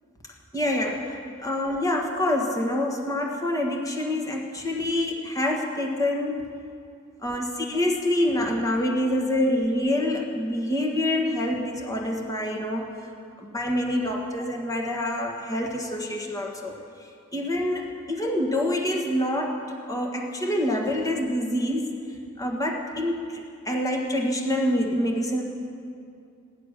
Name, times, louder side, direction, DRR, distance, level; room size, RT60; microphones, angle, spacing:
voice 1, 0.5-6.5 7.2-12.9 13.4-16.8 17.3-21.9 22.4-25.4, left 1 dB, 15° left, 1 dB, 1.6 m, -26 dB
17.0 x 11.0 x 6.6 m, 2.4 s
head